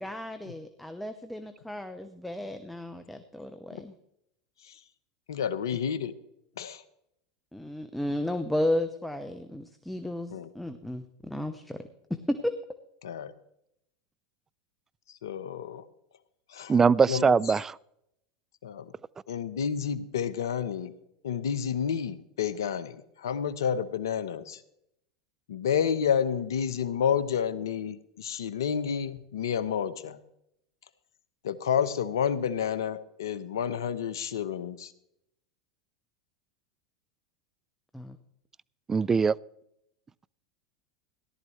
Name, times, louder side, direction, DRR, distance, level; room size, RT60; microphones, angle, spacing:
voice 1, 0.0-3.9 7.5-12.5 37.9-38.2, left 1 dB, 5° left, 8 dB, 0.9 m, -33 dB
voice 2, 5.3-6.1 6.6-6.8 10.3-10.5 13.0-13.3 15.2-15.8 16.5-16.7 17.1-17.4 18.6-18.9 19.3-20.9 21.2-24.6 25.5-30.2 31.4-34.9, left 8 dB, 80° left, 14 dB, 0.9 m, -30 dB
voice 3, 16.7-17.7 38.9-39.3, right 5 dB, 20° right, 21 dB, 0.3 m, -22 dB
17.5 x 12.0 x 3.2 m, 0.78 s
hypercardioid pair, 90°, 2 cm